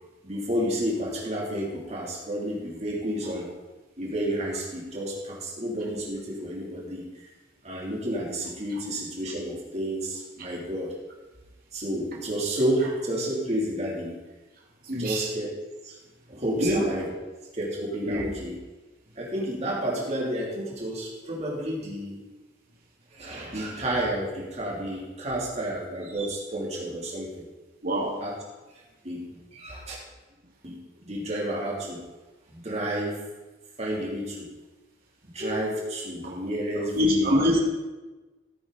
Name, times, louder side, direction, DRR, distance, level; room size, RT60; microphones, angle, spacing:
voice 1, 0.2-3.5 4.0-7.3 7.6-10.9 11.7-14.2 14.9-15.5 15.8-16.0 16.3-17.1 17.5-18.6 19.1-22.2 23.1-27.4 28.2-28.4 28.7-30.0 30.6-32.0 32.5-33.2 33.8-34.5 35.2-37.4, right 1 dB, 35° right, -4 dB, 3.1 m, -31 dB
voice 2, 14.8-15.3 16.6-16.8 18.0-18.3 27.8-28.1 36.9-37.7, left 1 dB, 50° right, -3 dB, 2.1 m, -24 dB
15.5 x 8.6 x 4.1 m, 1.2 s
head